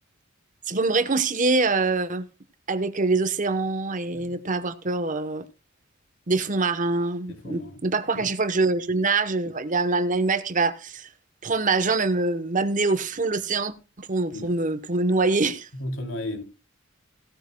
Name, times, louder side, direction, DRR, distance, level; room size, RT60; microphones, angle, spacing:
voice 1, 0.7-2.3 2.7-5.4 6.3-11.1 11.4-15.7, right 3 dB, 40° right, 1.0 m, -24 dB
voice 2, 7.3-7.8 8.1-8.3 14.3-14.5 15.7-16.4, left 1 dB, 70° left, 3.3 m, -34 dB
17.0 x 13.0 x 2.2 m
head